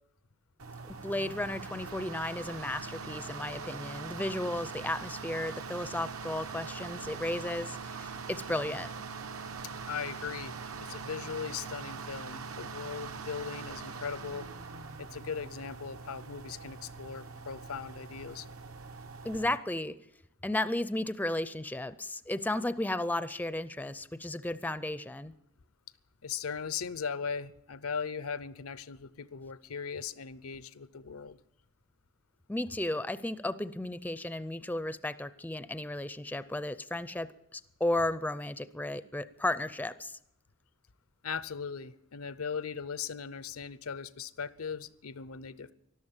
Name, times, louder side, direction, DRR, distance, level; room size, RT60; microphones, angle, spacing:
sound 1, 0.6-19.6, right 5 dB, 75° right, 1.1 m, -42 dB
voice 1, 0.9-8.9 19.2-20.0 20.4-25.3 32.5-40.2, left 1 dB, 10° left, 15 dB, 0.5 m, -34 dB
voice 2, 9.9-14.5 15.0-18.5 26.2-31.4 41.2-45.7, left 6 dB, 85° left, 17 dB, 0.7 m, -39 dB
13.0 x 12.0 x 8.9 m, 0.84 s
head